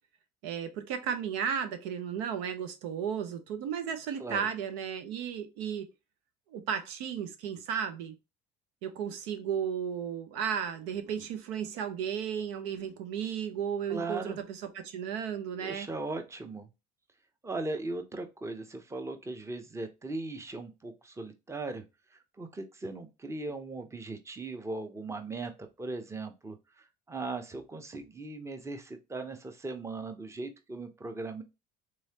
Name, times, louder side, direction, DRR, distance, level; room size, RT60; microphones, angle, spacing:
voice 1, 0.4-5.9 6.5-8.1 8.8-15.9, right 8 dB, 80° right, 0.8 m, -34 dB
voice 2, 13.9-14.4 15.6-16.7 17.4-21.8 22.4-31.4, right 3 dB, 15° right, 0.8 m, -38 dB
3.7 x 3.1 x 2.8 m
supercardioid pair, 85°, 20 cm